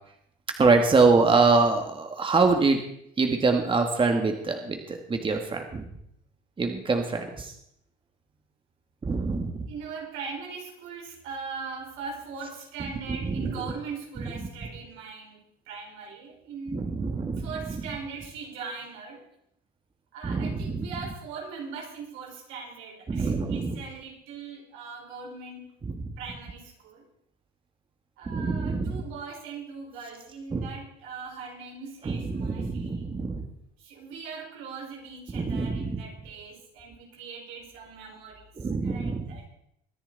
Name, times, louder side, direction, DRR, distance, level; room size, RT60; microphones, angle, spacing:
voice 1, 0.6-2.8 3.2-5.8 6.6-7.5 9.0-9.5 12.8-12.9 13.2-13.6 14.2-14.5 16.7-18.0 20.2-21.1 23.1-23.7 25.8-26.1 28.3-29.0 30.5-30.7 32.0-33.4 35.3-36.0 38.6-39.4, right 4 dB, 25° right, 4 dB, 1.9 m, -25 dB
voice 2, 9.7-16.8 17.4-19.3 20.1-25.8 26.2-27.1 28.2-33.1 33.8-39.5, right 5 dB, 80° right, 0 dB, 5.0 m, -40 dB
23.0 x 10.0 x 4.1 m, 0.72 s
supercardioid pair, 90°, 21 cm